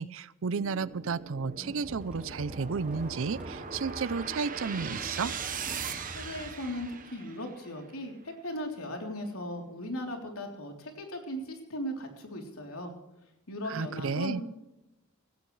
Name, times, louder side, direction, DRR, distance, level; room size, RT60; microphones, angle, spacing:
voice 1, 0.0-5.3 13.7-14.4, right 5 dB, 65° right, 19 dB, 0.5 m, -32 dB
sound 1, 0.5-7.8, right 5 dB, 40° right, 1.2 m, -40 dB
Motorcycle, 1.8-6.9, right 1 dB, 5° right, 3.6 m, -46 dB
voice 2, 6.1-12.9 13.5-14.4, left 1 dB, 85° left, 2 dB, 3.4 m, -37 dB
17.5 x 16.0 x 3.2 m, 0.92 s
head